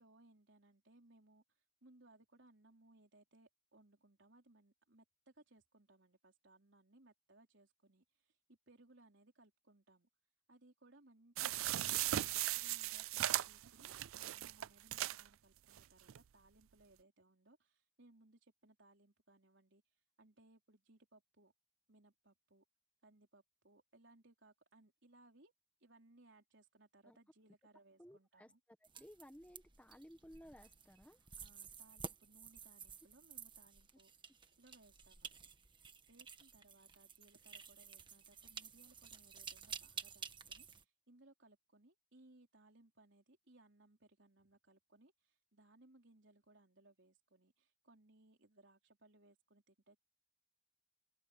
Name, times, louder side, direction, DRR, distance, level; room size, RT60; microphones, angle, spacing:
voice 1, 0.0-1.4 1.8-10.1 10.5-19.8 20.2-21.5 21.9-22.6 23.0-25.5 25.8-28.6 31.4-34.1 34.6-35.5 36.1-50.0, right 2 dB, 60° right, 4.2 m, -67 dB
sound 1, 11.4-15.3 15.8-15.9 16.1-16.2, right 14 dB, 75° right, 0.4 m, -38 dB
voice 2, 28.0-28.5 29.0-31.2, equal, 5° left, 1.5 m, -58 dB
sound 2, 28.8-40.8, right 6 dB, 20° right, 1.4 m, -52 dB
open air
head